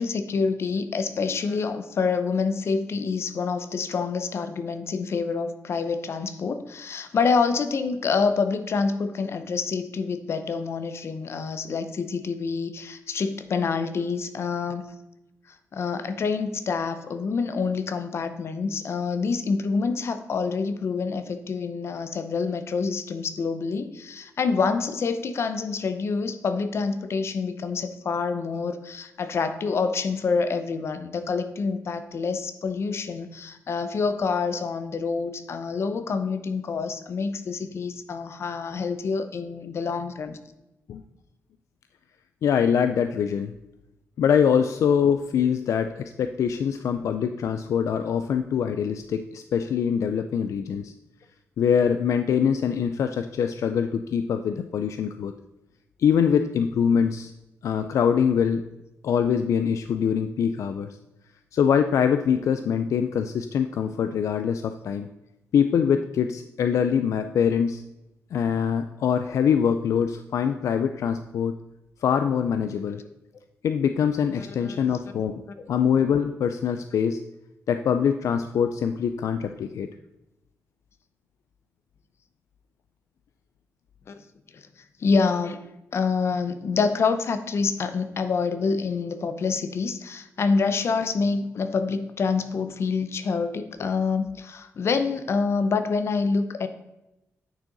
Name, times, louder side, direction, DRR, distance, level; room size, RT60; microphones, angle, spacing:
voice 1, 0.0-14.8 15.7-40.4 74.6-74.8 84.1-84.2 85.0-85.6 85.9-96.7, left 5 dB, 55° left, 10 dB, 0.7 m, -27 dB
voice 2, 42.4-43.5 44.2-50.9 51.6-55.3 56.0-57.3 57.6-58.6 59.0-60.9 61.5-65.1 65.5-67.8 68.3-71.6 72.0-73.0 73.6-75.4 75.7-77.2 77.7-79.9, left 7 dB, 80° left, 8 dB, 0.4 m, -23 dB
9.0 x 6.4 x 4.0 m, 0.94 s
wide cardioid pair, 120°, 5 cm